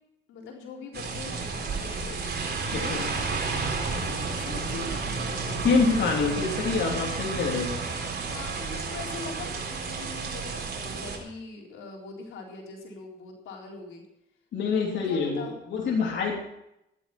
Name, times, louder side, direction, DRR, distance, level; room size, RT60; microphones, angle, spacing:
voice 1, 0.3-2.2 2.6-3.7 3.9-6.8 8.0-14.0 14.7-15.5, left 4 dB, 85° left, 0 dB, 3.9 m, -42 dB
sound 1, 0.9-11.2, right 4 dB, 55° right, 4.0 m, -31 dB
voice 2, 5.6-7.7 14.5-16.4, left 4 dB, 65° left, -1 dB, 3.2 m, -26 dB
14.5 x 11.0 x 6.0 m, 0.83 s
cardioid pair, 90°, 20 cm